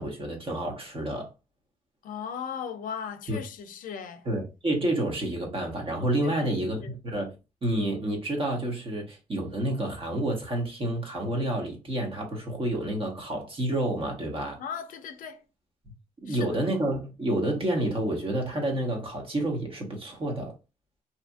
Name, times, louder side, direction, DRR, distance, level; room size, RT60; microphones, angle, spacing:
voice 1, 0.0-1.3 3.3-3.4 4.2-7.3 7.6-14.6 16.2-20.5, right 1 dB, 40° right, 1.1 m, -29 dB
voice 2, 2.0-4.3 6.2-6.9 14.6-15.4 16.3-16.6, left 7 dB, 70° left, 0.4 m, -37 dB
2.7 x 2.4 x 2.3 m
cardioid pair, 80°, 14 cm